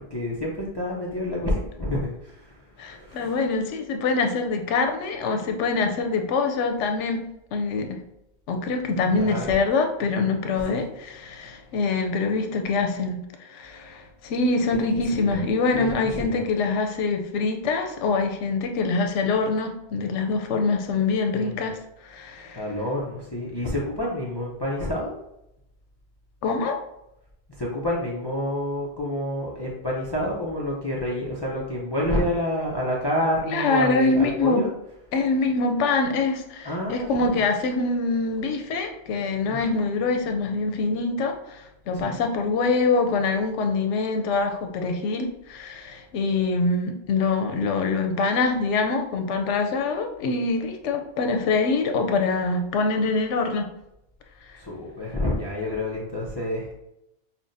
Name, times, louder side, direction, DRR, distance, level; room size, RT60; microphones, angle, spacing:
voice 1, 0.1-3.3 9.1-9.5 10.7-10.8 14.7-15.4 15.7-16.4 21.3-21.7 22.5-25.2 27.6-34.7 36.6-37.4 39.5-39.8 41.9-42.2 54.6-56.7, left 1 dB, 35° left, -4 dB, 0.4 m, -29 dB
voice 2, 2.8-7.2 7.5-8.0 8.5-22.6 26.4-26.8 33.4-34.6 35.1-53.7, left 3 dB, 90° left, 5 dB, 0.9 m, -24 dB
5.7 x 2.1 x 2.6 m, 0.83 s
omnidirectional pair, 1.2 m